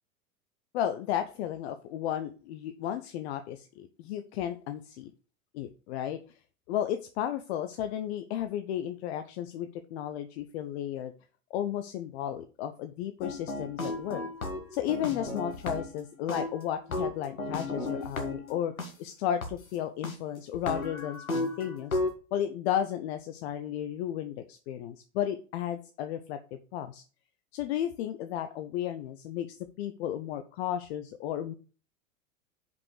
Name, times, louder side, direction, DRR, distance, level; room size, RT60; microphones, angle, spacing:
voice 1, 0.7-5.1 5.5-6.2 6.7-11.1 11.5-14.2 14.7-18.7 19.0-22.0 22.3-27.0 27.5-31.5, left 10 dB, 50° left, 9 dB, 0.8 m, -33 dB
sound 1, 13.2-16.0 16.3-18.9 19.4-19.5 20.0-20.2 20.5-22.1, left 2 dB, 85° left, 1.7 m, -34 dB
5.4 x 5.3 x 6.5 m, 0.37 s
figure-of-eight pair, 90°, 41 cm